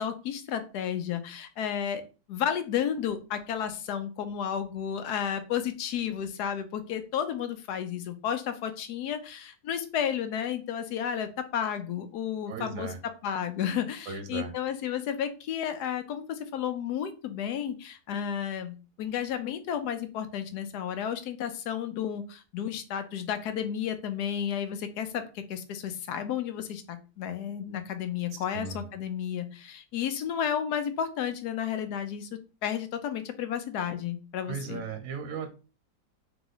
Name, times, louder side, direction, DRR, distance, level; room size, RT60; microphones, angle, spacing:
voice 1, 0.0-2.0 2.3-32.3 32.6-34.8, left 9 dB, 80° left, 9 dB, 1.2 m, -32 dB
voice 2, 12.5-13.0 14.1-14.5 28.5-28.9 34.5-35.5, right 5 dB, 65° right, 6 dB, 1.0 m, -36 dB
3.8 x 2.9 x 3.9 m, 0.32 s
omnidirectional pair, 1.7 m